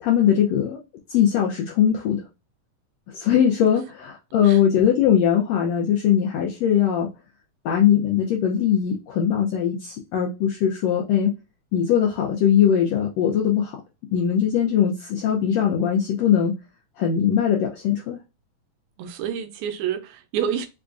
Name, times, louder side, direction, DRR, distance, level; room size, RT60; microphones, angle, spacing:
voice 1, 0.0-0.8 1.1-2.2 3.1-7.1 7.6-11.3 11.7-13.8 14.1-16.5 17.0-18.2, left 9 dB, 90° left, 1.4 m, -20 dB
voice 2, 19.0-20.7, right 8 dB, 80° right, 1.7 m, -28 dB
4.8 x 2.3 x 2.4 m
omnidirectional pair, 3.6 m